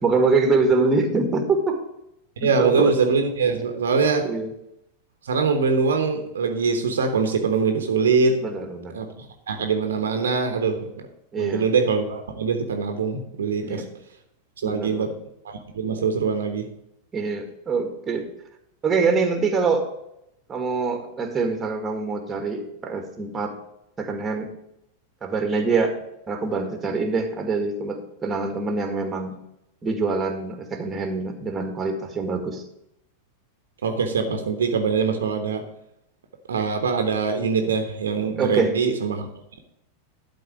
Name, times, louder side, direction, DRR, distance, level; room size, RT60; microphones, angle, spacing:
voice 1, 0.0-1.8 2.4-2.9 4.2-4.5 8.4-9.0 11.3-11.6 13.6-13.9 14.6-15.1 17.1-18.3 18.8-19.9 20.5-23.5 24.0-24.5 25.2-25.9 26.3-29.3 29.8-32.6 38.3-38.7, right 4 dB, 20° right, 5 dB, 1.8 m, -24 dB
voice 2, 2.4-4.3 5.2-8.4 8.9-11.1 11.4-13.8 14.6-15.1 15.4-16.7 33.8-35.6 36.5-39.3, right 5 dB, 65° right, 5 dB, 1.2 m, -23 dB
12.0 x 4.2 x 7.1 m, 0.81 s
figure-of-eight pair, 90°, 0 cm